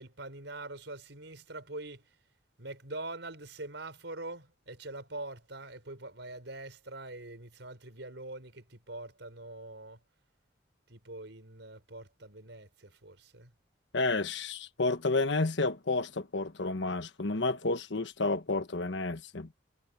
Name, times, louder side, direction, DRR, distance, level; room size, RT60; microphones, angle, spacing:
voice 1, 0.0-2.1 2.6-10.0 10.9-13.5, right 2 dB, 75° right, 4.7 m, -44 dB
voice 2, 13.9-19.5, left 3 dB, 75° left, 1.2 m, -30 dB
head